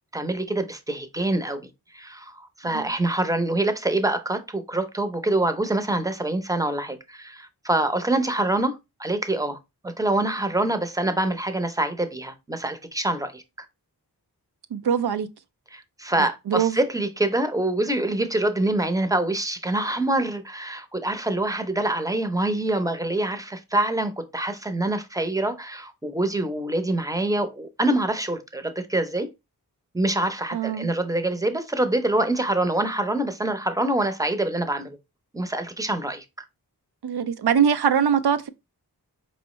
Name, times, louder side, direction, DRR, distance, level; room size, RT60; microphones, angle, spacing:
voice 1, 0.1-9.6 9.8-13.4 15.7-29.3 29.9-35.0 35.3-36.2, right 1 dB, 10° right, 0.7 m, -25 dB
voice 2, 14.7-15.3 16.2-16.8 30.5-30.9 37.0-38.5, right 8 dB, 75° right, 0.5 m, -22 dB
4.4 x 3.1 x 3.1 m
wide cardioid pair, 55°, 40 cm